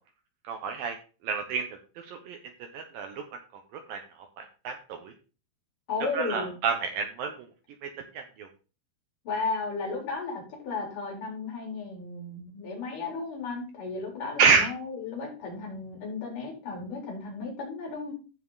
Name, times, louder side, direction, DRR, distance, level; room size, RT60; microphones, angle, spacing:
voice 1, 0.5-1.0 1.2-1.7 2.0-2.4 2.7-3.2 3.9-4.0 4.4-5.1 6.1-7.3 7.8-7.9 8.1-8.5 14.4-14.7, right 5 dB, 70° right, 5 dB, 2.5 m, -27 dB
voice 2, 5.9-6.5 9.3-18.1, left 4 dB, 55° left, -1 dB, 5.4 m, -34 dB
15.0 x 5.4 x 4.0 m, 0.35 s
omnidirectional pair, 4.6 m